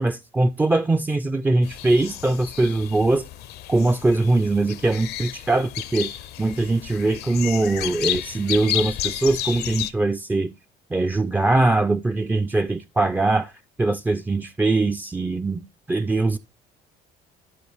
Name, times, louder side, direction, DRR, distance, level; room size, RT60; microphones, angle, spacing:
voice 1, 0.0-3.3 3.7-6.1 6.4-10.5 10.9-13.5 13.8-16.4, right 2 dB, 10° right, 0.3 m, -22 dB
sound 1, 1.6-9.9, left 12 dB, 75° left, 0.6 m, -32 dB
13.0 x 4.4 x 3.3 m
cardioid pair, 110°, 17 cm